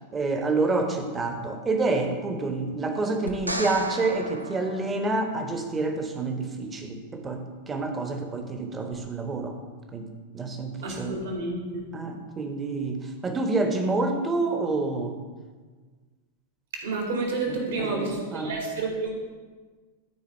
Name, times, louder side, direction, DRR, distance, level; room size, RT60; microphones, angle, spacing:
voice 1, 0.1-9.6 9.9-10.1 10.3-11.2 11.9-15.2 17.5-18.5, right 3 dB, 20° right, 4 dB, 1.2 m, -28 dB
sound 1, 3.3-5.6 8.9-9.0, right 1 dB, 90° right, 0.6 m, -34 dB
voice 2, 10.8-11.9 16.8-19.1, right 3 dB, 60° right, -1 dB, 2.4 m, -30 dB
12.5 x 4.5 x 4.5 m, 1.4 s
figure-of-eight pair, 95°, 0 cm